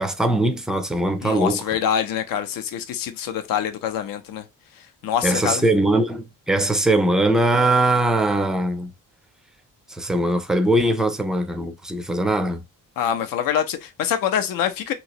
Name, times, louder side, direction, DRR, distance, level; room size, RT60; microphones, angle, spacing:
voice 1, 0.0-1.6 5.2-8.9 10.0-12.6, right 1 dB, ahead, 0.3 m, -21 dB
voice 2, 1.2-4.4 5.0-5.6 13.0-14.9, left 9 dB, 80° left, 0.7 m, -25 dB
3.0 x 2.9 x 2.8 m
cardioid pair, 155°, 34 cm